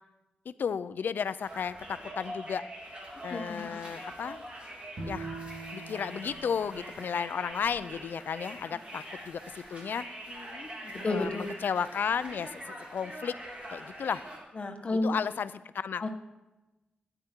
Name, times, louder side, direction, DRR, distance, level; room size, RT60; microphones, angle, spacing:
voice 1, 0.5-2.6 3.2-4.5 5.1-5.3 5.7-10.1 11.0-12.6 12.9-13.3 13.7-14.2 15.0-16.1, left 7 dB, 85° left, 15 dB, 0.5 m, -33 dB
Conversation, 1.4-14.4, equal, 35° right, 2.9 m, -44 dB
voice 2, 3.3-3.8 10.4-11.5 14.6-15.1 16.0-16.1, left 2 dB, 40° left, 4 dB, 1.2 m, -32 dB
Bowed string instrument, 5.0-8.2, right 3 dB, 55° right, 3.0 m, -44 dB
16.5 x 10.0 x 4.5 m, 1.0 s
wide cardioid pair, 150°, 3 cm